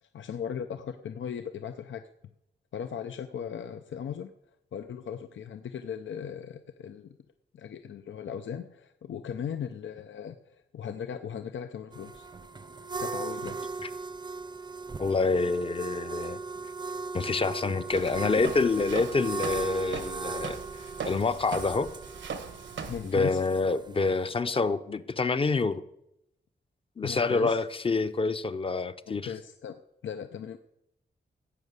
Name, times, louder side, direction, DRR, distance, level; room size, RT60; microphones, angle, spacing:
voice 1, 0.0-2.0 2.7-4.3 4.7-7.2 7.5-12.3 13.0-13.6 22.8-23.4 27.0-27.6 29.1-30.6, left 8 dB, 90° left, 8 dB, 0.6 m, -38 dB
sound 1, 11.9-24.4, right 3 dB, 25° right, 0.6 m, -38 dB
voice 2, 15.0-16.4 17.1-20.6 21.1-21.9 23.0-25.8 27.0-29.3, left 3 dB, 30° left, 12 dB, 0.6 m, -27 dB
Walk footsteps, 17.9-23.1, right 6 dB, 80° right, 1.0 m, -40 dB
16.0 x 6.5 x 8.2 m, 0.83 s
wide cardioid pair, 170°, 19 cm